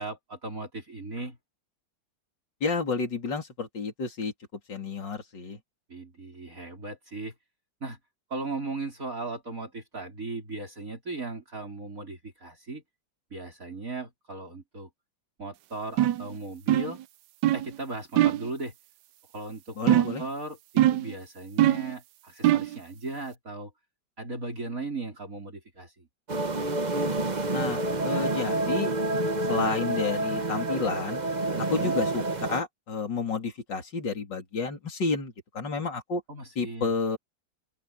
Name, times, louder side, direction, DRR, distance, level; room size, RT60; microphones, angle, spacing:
voice 1, 0.0-1.4 5.9-7.3 7.8-8.0 8.3-12.8 13.3-14.9 15.4-17.0 17.5-18.7 19.3-23.7 24.2-26.1 31.5-32.0 36.3-36.9, right 3 dB, 45° right, 5.0 m, -37 dB
voice 2, 2.6-4.3 4.7-5.6 19.8-20.2 27.5-28.9 29.5-31.2 31.7-36.2 36.6-37.2, left 4 dB, 65° left, 4.0 m, -30 dB
sound 1, 16.0-16.3 16.7-17.0 17.4-17.7 18.2-18.5 19.9-20.3 20.8-21.1 21.6-21.9 22.4-22.8, right 13 dB, 70° right, 1.1 m, -22 dB
sound 2, 26.3-32.6, right 2 dB, 25° right, 1.1 m, -28 dB
open air
omnidirectional pair, 2.1 m